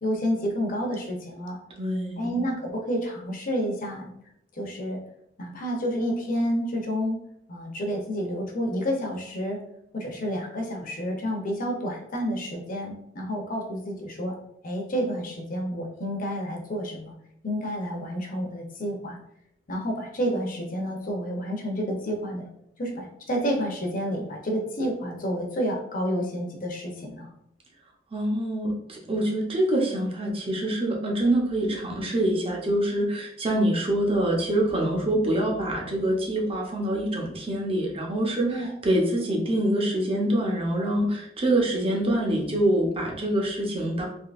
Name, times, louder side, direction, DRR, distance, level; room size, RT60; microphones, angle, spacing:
voice 1, 0.0-1.6 2.2-4.1 4.5-5.0 5.4-7.2 7.5-9.6 9.9-14.3 14.6-17.1 17.4-19.2 19.7-22.5 22.8-27.3 38.4-38.7, equal, 50° left, 1 dB, 0.7 m, -29 dB
voice 2, 1.8-2.2 28.1-44.0, right 1 dB, 30° right, -1 dB, 0.7 m, -25 dB
3.6 x 2.7 x 2.4 m, 0.74 s
head